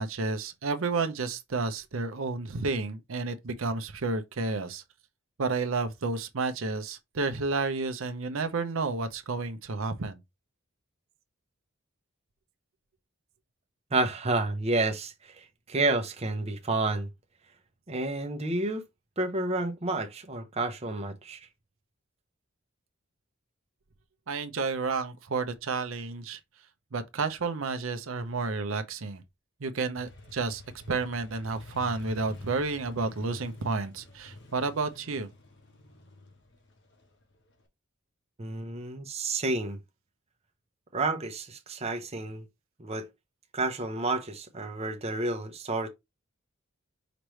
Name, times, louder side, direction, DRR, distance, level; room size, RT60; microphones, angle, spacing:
voice 1, 0.0-4.8 5.4-10.2 24.3-26.4 26.9-29.2 29.6-30.6 30.9-35.3, right 3 dB, 70° right, 0.7 m, -31 dB
voice 2, 13.9-15.1 15.7-17.1 17.9-18.8 19.2-21.4 38.4-39.8 40.9-42.4 42.8-43.1 43.5-45.9, right 2 dB, 30° right, 0.7 m, -30 dB
Motorcycle, 30.0-37.6, left 2 dB, 60° left, 1.1 m, -48 dB
5.0 x 3.2 x 3.1 m
head